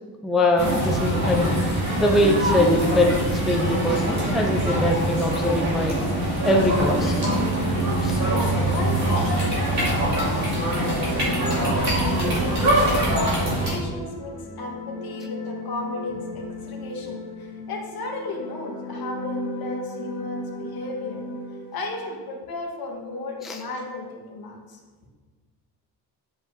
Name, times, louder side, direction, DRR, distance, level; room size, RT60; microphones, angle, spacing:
voice 1, 0.2-1.5 2.0-6.0 6.4-7.2 8.0-8.2 23.4-23.6, left 1 dB, ahead, 1 dB, 0.4 m, -22 dB
sound 1, 0.6-13.8, right 1 dB, 40° right, 2.5 m, -23 dB
sound 2, 6.4-22.1, equal, 50° left, 2.3 m, -35 dB
voice 2, 7.9-12.3 12.8-21.2 21.7-24.8, left 2 dB, 65° left, 0 dB, 1.5 m, -34 dB
9.8 x 7.8 x 2.7 m, 1.4 s
cardioid pair, 180°, 40 cm